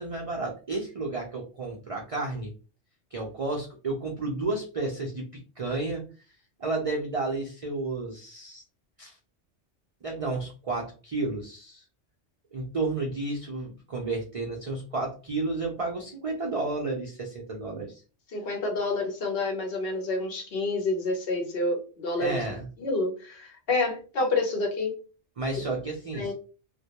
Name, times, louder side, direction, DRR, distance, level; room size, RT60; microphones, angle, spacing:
voice 1, 0.0-2.5 3.1-5.3 5.6-6.0 6.6-8.6 9.0-9.2 10.0-11.8 12.5-18.0 22.2-22.7 25.4-26.3, right 3 dB, 60° right, -1 dB, 0.3 m, -32 dB
voice 2, 18.3-22.5 22.8-25.0 26.1-26.3, left 2 dB, 60° left, 3 dB, 0.8 m, -28 dB
2.1 x 2.1 x 2.8 m, 0.35 s
omnidirectional pair, 1.2 m